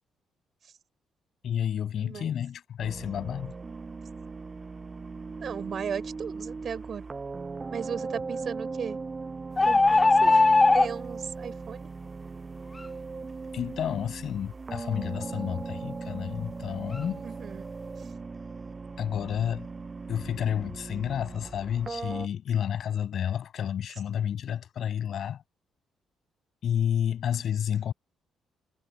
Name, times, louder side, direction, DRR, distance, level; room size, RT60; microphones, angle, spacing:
voice 1, 1.4-3.5 13.5-17.2 19.0-19.7 20.1-25.4 26.6-27.9, left 9 dB, 65° left, 7.6 m, -30 dB
voice 2, 2.0-2.3 5.4-7.1 7.7-9.0 9.7-11.9 17.2-17.7, right 7 dB, 50° right, 5.7 m, -36 dB
sound 1, 2.8-22.3, right 4 dB, 30° right, 7.9 m, -38 dB
sound 2, 9.6-10.9, left 3 dB, 20° left, 0.3 m, -19 dB
cardioid pair, 90°, 0 cm